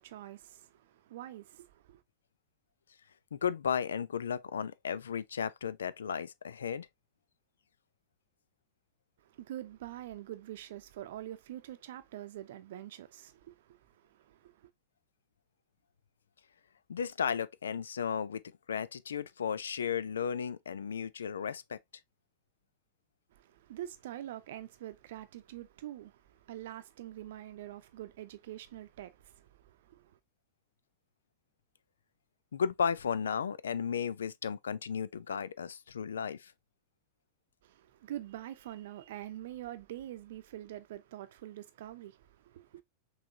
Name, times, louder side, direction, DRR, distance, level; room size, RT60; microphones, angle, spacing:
voice 1, 0.0-2.0 9.2-14.7 23.3-30.2 37.6-42.8, right 13 dB, 55° right, 0.7 m, -45 dB
voice 2, 3.3-6.9 16.9-18.4 18.7-21.8 32.5-36.5, left 7 dB, 70° left, 0.4 m, -34 dB
6.0 x 3.2 x 2.6 m
figure-of-eight pair, 90°, 0 cm